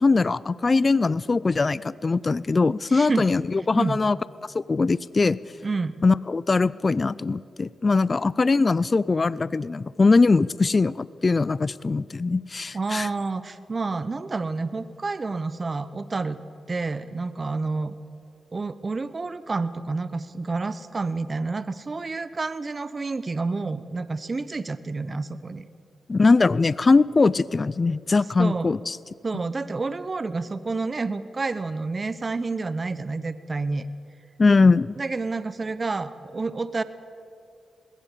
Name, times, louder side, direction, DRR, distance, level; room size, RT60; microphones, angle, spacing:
voice 1, 0.0-4.2 4.4-5.4 6.0-13.1 26.1-29.0 34.4-34.9, left 3 dB, 40° left, 20 dB, 0.4 m, -21 dB
voice 2, 2.9-3.3 3.7-4.0 5.6-5.9 12.7-16.4 16.7-17.9 18.5-25.6 28.4-28.7 29.2-33.9 34.9-36.8, right 3 dB, 40° right, 15 dB, 0.9 m, -29 dB
20.0 x 17.5 x 8.5 m, 2.5 s
cardioid pair, 55°, 0 cm